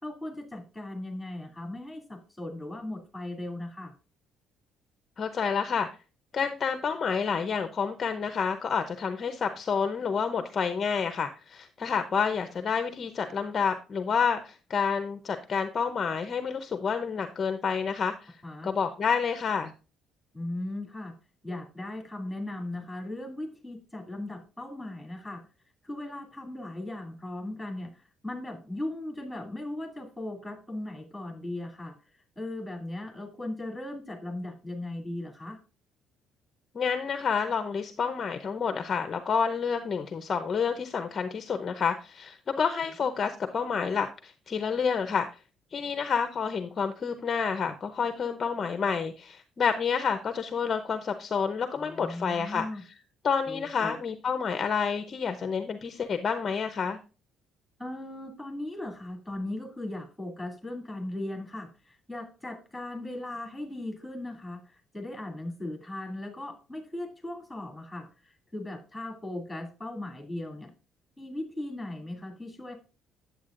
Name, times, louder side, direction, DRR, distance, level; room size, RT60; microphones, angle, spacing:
voice 1, 0.0-3.9 18.4-18.7 20.3-21.1 21.4-25.4 25.8-31.9 32.4-35.6 51.8-52.8 53.5-54.0 57.8-70.7 71.2-72.7, left 1 dB, ahead, 2 dB, 2.6 m, -38 dB
voice 2, 5.2-5.9 6.3-18.4 18.6-19.7 36.7-45.3 45.7-52.8 53.2-57.0, left 6 dB, 30° left, 8 dB, 0.7 m, -29 dB
9.3 x 8.0 x 2.5 m, 0.32 s
cardioid pair, 160°, 0 cm